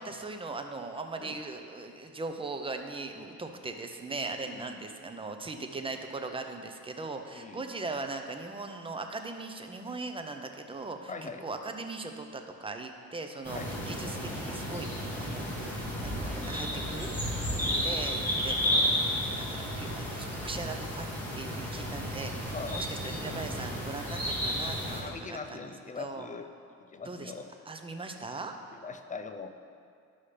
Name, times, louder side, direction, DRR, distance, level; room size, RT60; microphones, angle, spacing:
voice 1, 0.0-13.6 13.9-15.8 16.0-17.1 17.6-19.4 19.8-21.1 21.3-25.6 26.0-26.3 27.0-27.3 27.7-28.5, right 3 dB, 20° right, 5 dB, 0.7 m, -39 dB
voice 2, 4.4-4.8 5.6-5.7 7.3-7.7 11.1-11.4 13.5-13.7 16.3-16.6 17.5-18.0 22.5-22.8 24.8-26.5 26.9-27.5 28.8-29.5, left 4 dB, 25° left, 7 dB, 0.5 m, -42 dB
sound 1, 13.4-25.0, equal, 5° left, 2.1 m, -32 dB
11.5 x 5.6 x 3.3 m, 2.3 s
cardioid pair, 90°, 30 cm